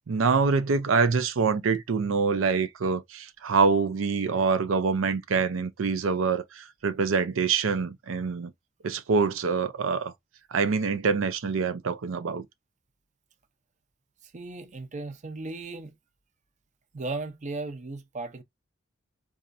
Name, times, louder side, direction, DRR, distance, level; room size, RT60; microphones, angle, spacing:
voice 1, 0.1-8.5 8.8-10.1 10.5-12.4, right 5 dB, 85° right, 0.5 m, -25 dB
voice 2, 14.2-16.0 16.9-18.4, right 3 dB, 40° right, 0.6 m, -36 dB
4.1 x 2.4 x 2.5 m
head